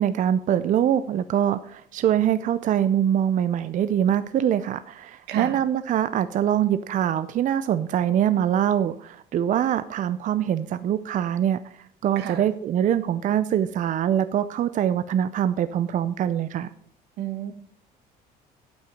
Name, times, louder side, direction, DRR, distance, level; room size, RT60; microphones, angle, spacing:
voice 1, 0.0-11.6 12.0-16.7, right 10 dB, 50° right, 12 dB, 0.5 m, -23 dB
voice 2, 5.3-5.6 12.2-12.4 17.2-17.5, right 10 dB, 85° right, 9 dB, 1.3 m, -32 dB
9.1 x 8.4 x 5.1 m, 0.62 s
cardioid pair, 110°, 17 cm